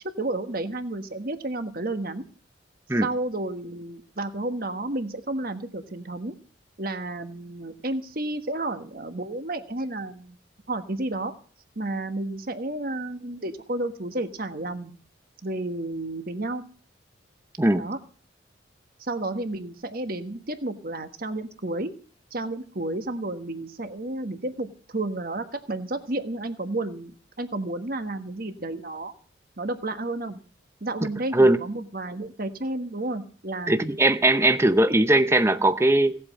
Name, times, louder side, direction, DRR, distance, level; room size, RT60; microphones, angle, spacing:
voice 1, 0.2-2.2 3.0-6.3 6.8-10.4 10.7-11.3 11.7-14.9 15.4-16.6 17.7-18.0 19.0-21.9 22.3-29.1 29.6-30.4 30.8-33.8, right 2 dB, 50° right, 1.3 m, -31 dB
voice 2, 33.7-36.2, right 1 dB, 15° right, 0.7 m, -19 dB
17.5 x 8.5 x 7.6 m
head